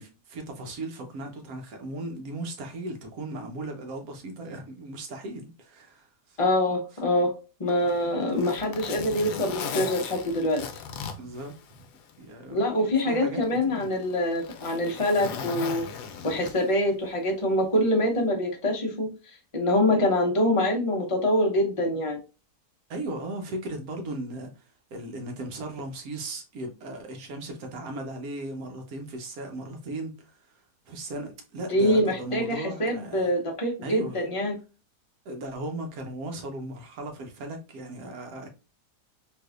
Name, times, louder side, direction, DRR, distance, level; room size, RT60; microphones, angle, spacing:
voice 1, 0.0-6.4 8.3-8.4 11.2-11.8 12.2-13.9 22.9-24.6 24.9-30.3 30.9-33.3 33.8-34.2 35.2-38.5, right 1 dB, 65° right, 1.3 m, -37 dB
voice 2, 6.4-7.3 7.6-10.6 12.5-15.9 16.2-22.2 31.7-34.5, left 1 dB, 25° left, 0.8 m, -25 dB
Zipper (clothing), 7.7-12.2 12.5-12.6 13.4-16.9 18.1-18.3, left 6 dB, 85° left, 1.2 m, -37 dB
3.4 x 3.1 x 2.3 m
omnidirectional pair, 1.7 m